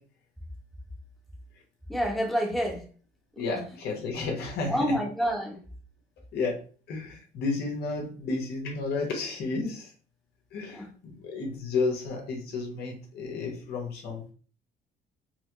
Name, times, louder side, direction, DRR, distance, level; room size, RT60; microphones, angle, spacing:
voice 1, 1.9-2.8 4.7-5.6 10.7-10.9, equal, ahead, 1 dB, 1.0 m, -27 dB
voice 2, 3.4-4.9 6.3-6.6 6.9-9.9 10.5-14.3, left 3 dB, 70° left, 0 dB, 1.4 m, -32 dB
4.4 x 2.3 x 3.0 m, 0.40 s
cardioid pair, 110°, 17 cm